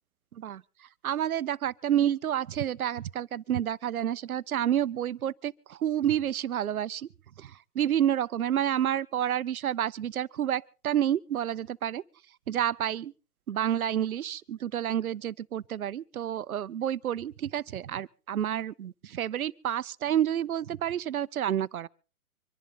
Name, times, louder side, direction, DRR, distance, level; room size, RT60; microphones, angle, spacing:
voice 1, 1.0-7.1 7.4-12.0 12.5-13.1 13.5-21.9, right 10 dB, 70° right, 0.8 m, -29 dB
25.5 x 11.0 x 4.0 m
hypercardioid pair, 140°, 45 cm